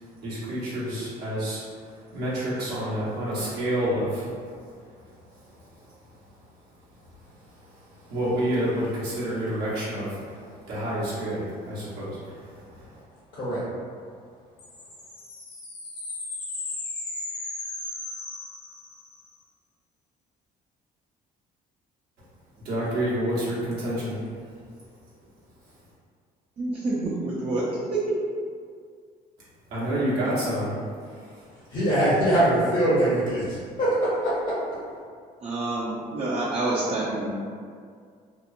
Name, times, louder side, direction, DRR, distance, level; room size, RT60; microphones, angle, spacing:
voice 1, 0.2-1.6 2.1-4.3 8.1-10.4 10.7-12.4 12.7-12.8 22.6-24.2 29.7-30.8, right 1 dB, 70° right, -9 dB, 1.0 m, -28 dB
voice 2, 13.3-13.6 31.7-34.6, right 1 dB, 55° left, -9 dB, 0.8 m, -23 dB
sound 1, 14.6-19.2, left 2 dB, 90° left, 0.7 m, -36 dB
voice 3, 26.6-28.2 35.4-37.3, right 2 dB, 35° right, -7 dB, 0.5 m, -27 dB
2.9 x 2.0 x 2.5 m, 2.1 s
cardioid pair, 110°, 17 cm